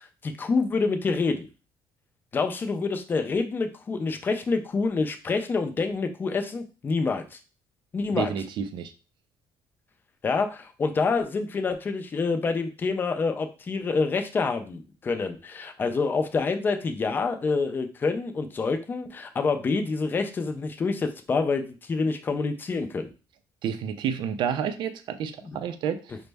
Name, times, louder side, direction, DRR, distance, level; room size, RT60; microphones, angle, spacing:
voice 1, 0.0-1.5 2.3-7.4 7.9-8.3 10.2-23.1, left 4 dB, 20° left, 7 dB, 0.4 m, -27 dB
voice 2, 8.1-8.9 23.6-26.2, right 8 dB, 55° right, 9 dB, 0.4 m, -30 dB
5.1 x 2.1 x 3.3 m, 0.33 s
cardioid pair, 170°, 9 cm